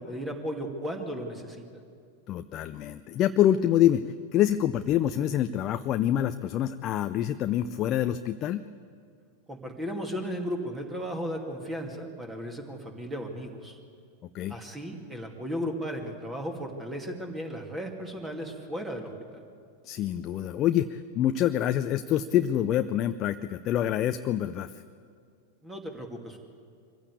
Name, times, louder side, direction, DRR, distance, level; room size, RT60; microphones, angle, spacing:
voice 1, 0.0-1.6 9.5-13.8 14.5-19.4 25.6-26.4, equal, 15° right, 3 dB, 2.4 m, -35 dB
voice 2, 2.3-4.0 4.3-8.6 14.3-14.6 19.8-24.7, left 11 dB, 35° left, 10 dB, 0.6 m, -26 dB
24.0 x 15.5 x 8.4 m, 2.3 s
figure-of-eight pair, 90°, 0 cm